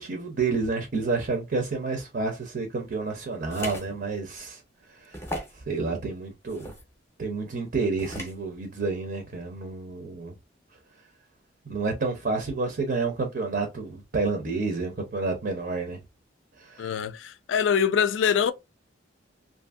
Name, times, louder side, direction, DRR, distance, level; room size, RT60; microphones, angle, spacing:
voice 1, 0.0-4.6 5.0-5.2 5.5-6.7 7.2-10.3 11.7-16.0 16.6-17.0, right 3 dB, 50° right, 0.6 m, -29 dB
sound 1, 3.5-3.9 4.4-4.5 5.1-5.6 6.5-6.8 8.0-8.4, left 1 dB, 15° left, 0.6 m, -36 dB
voice 2, 16.8-18.5, left 7 dB, 65° left, 0.3 m, -24 dB
2.6 x 2.6 x 2.4 m
head